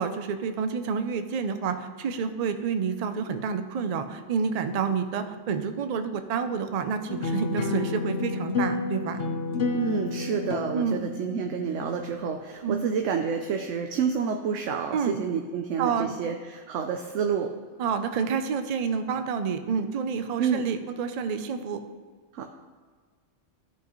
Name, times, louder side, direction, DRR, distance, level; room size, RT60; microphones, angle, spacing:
voice 1, 0.0-9.2 10.7-11.0 12.6-12.9 14.9-15.2 15.8-16.2 17.8-21.8, right 6 dB, 50° right, 9 dB, 0.5 m, -29 dB
sound 1, 7.1-12.1, left 3 dB, 55° left, 1.0 m, -30 dB
voice 2, 9.7-17.5 20.4-20.6 22.3-22.4, right 6 dB, 80° right, 4 dB, 1.0 m, -29 dB
14.5 x 5.6 x 3.1 m, 1.5 s
omnidirectional pair, 1.3 m